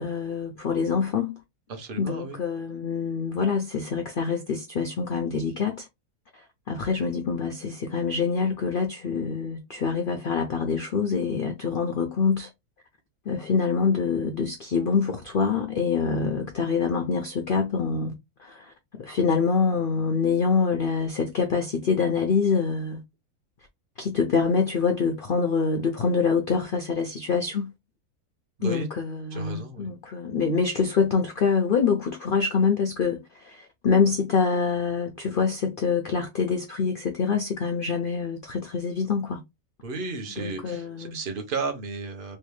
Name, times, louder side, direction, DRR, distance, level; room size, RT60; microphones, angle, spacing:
voice 1, 0.0-1.4 2.0-5.9 6.3-12.5 13.3-18.1 18.4-23.0 24.0-27.7 28.6-39.4 40.4-41.2, left 5 dB, 65° left, 0.5 m, -25 dB
voice 2, 1.7-2.4 28.6-28.9 29.3-29.9 39.8-42.4, right 4 dB, 40° right, 1.0 m, -33 dB
3.3 x 2.7 x 3.1 m
omnidirectional pair, 1.6 m